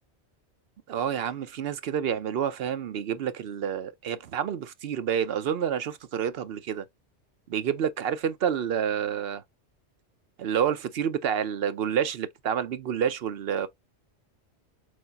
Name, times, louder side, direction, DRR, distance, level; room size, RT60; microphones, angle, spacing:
voice 1, 0.9-6.8 7.5-9.4 10.4-13.7, right 8 dB, 65° right, 0.8 m, -28 dB
6.3 x 2.1 x 2.7 m
omnidirectional pair, 1.2 m